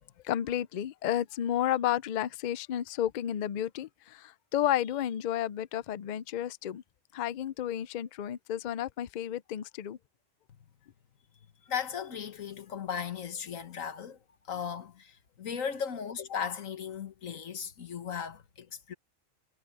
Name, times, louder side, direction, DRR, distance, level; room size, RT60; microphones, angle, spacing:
voice 1, 0.2-6.8 7.1-10.0, left 11 dB, 65° left, 0.4 m, -32 dB
voice 2, 11.6-14.2 14.5-18.9, left 7 dB, 85° left, 1.7 m, -37 dB
omnidirectional pair, 1.3 m